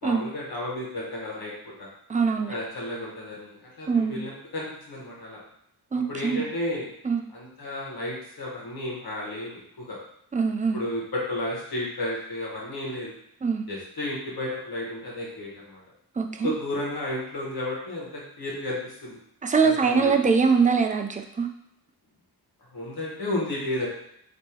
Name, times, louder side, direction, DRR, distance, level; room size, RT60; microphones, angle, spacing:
voice 1, 0.0-1.9 2.5-5.4 6.1-6.9 7.3-10.0 10.7-13.1 13.7-15.8 16.4-19.1 19.6-20.1 22.7-23.9, left 1 dB, 65° left, -4 dB, 1.5 m, -32 dB
voice 2, 2.1-2.5 3.9-4.2 5.9-6.4 7.0-7.2 10.3-10.8 13.4-13.6 16.2-16.5 19.4-21.5, right 5 dB, 20° right, 4 dB, 0.4 m, -23 dB
3.5 x 3.0 x 4.4 m, 0.72 s
wide cardioid pair, 110°, 39 cm